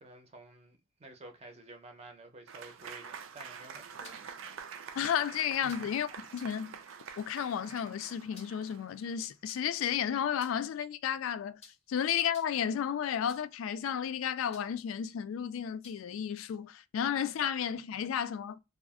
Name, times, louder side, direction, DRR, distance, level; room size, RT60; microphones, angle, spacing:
voice 1, 0.0-4.8 5.6-5.9, right 2 dB, 30° right, 0.5 m, -52 dB
Applause / Crowd, 2.5-9.3, right 7 dB, 80° right, 0.4 m, -47 dB
sound 1, 3.4-4.3 5.6-6.0 6.3-6.6 8.1-8.8 9.5-9.8 10.3-10.8 11.6-11.9 12.3-12.7 13.3-13.6 14.5-14.9 15.8-16.2, left 5 dB, 30° left, 0.5 m, -56 dB
voice 2, 5.0-6.1 6.3-6.8 7.2-11.6 11.9-18.6, left 8 dB, 85° left, 0.3 m, -32 dB
2.3 x 2.0 x 3.4 m
head